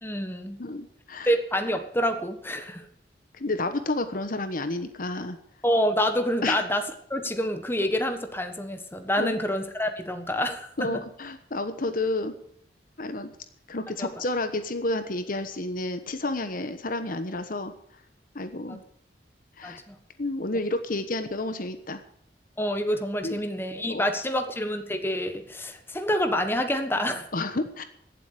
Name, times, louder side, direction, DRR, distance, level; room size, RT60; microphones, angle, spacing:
voice 1, 0.0-0.6 1.2-2.8 5.6-11.0 14.0-14.1 18.7-18.8 19.6-20.0 22.6-27.3, equal, 15° left, 6 dB, 1.4 m, -27 dB
voice 2, 0.6-1.3 3.3-5.4 6.4-6.6 9.2-9.3 10.8-12.3 13.0-13.3 13.7-17.7 18.3-18.8 19.6-19.8 20.2-22.0 23.2-23.3 23.9-24.0 27.3-27.8, left 2 dB, 55° left, 9 dB, 1.2 m, -30 dB
16.5 x 7.9 x 8.3 m, 0.67 s
head